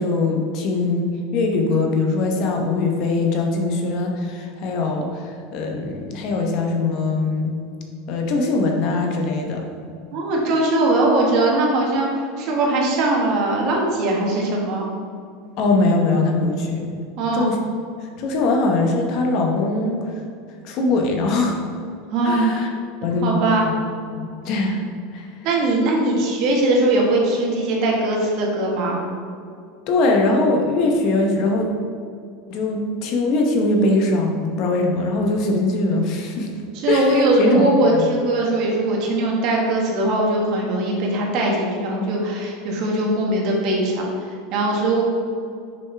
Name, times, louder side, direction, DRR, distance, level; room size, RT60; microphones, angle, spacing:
voice 1, 0.0-7.6 8.1-9.7 15.6-16.9 17.3-17.6 18.0-20.1 20.6-21.6 22.2-22.7 23.0-23.4 24.1-24.8 25.1-25.3 29.9-31.7 32.5-36.5 36.9-37.6 37.9-38.1, left 2 dB, 50° left, 2 dB, 0.9 m, -21 dB
voice 2, 10.1-14.9 17.2-17.5 22.1-22.5 23.2-23.7 25.4-29.0 36.8-45.0, right 2 dB, 50° right, -1 dB, 1.5 m, -20 dB
6.6 x 5.3 x 3.3 m, 2.3 s
supercardioid pair, 145°, 0 cm